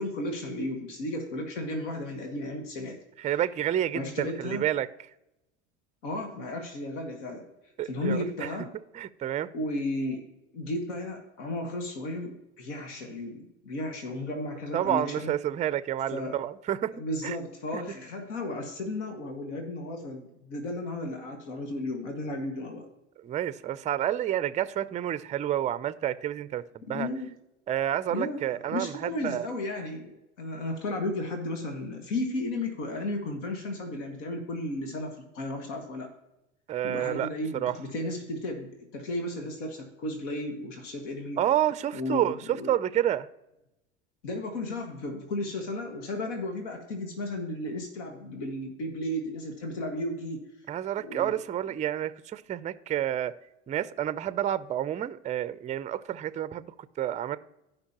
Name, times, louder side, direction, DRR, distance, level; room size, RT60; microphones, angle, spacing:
voice 1, 0.0-3.4 3.9-4.7 6.0-7.5 7.8-8.7 9.5-10.2 10.5-15.3 16.1-16.4 16.9-22.9 26.9-27.3 28.1-28.4 28.7-30.1 30.4-36.1 36.8-41.4 41.9-42.7 44.2-50.4 51.0-51.4, left 1 dB, 75° left, 1.7 m, -34 dB
voice 2, 3.2-4.9 7.8-8.5 8.9-9.5 14.7-16.9 17.2-17.4 17.7-17.8 23.2-27.1 27.7-29.5 36.7-37.7 41.4-43.3 50.7-53.3 53.7-56.7 57.0-57.4, right 11 dB, 20° right, 0.4 m, -29 dB
16.0 x 5.4 x 2.9 m
hypercardioid pair, 85°, 36 cm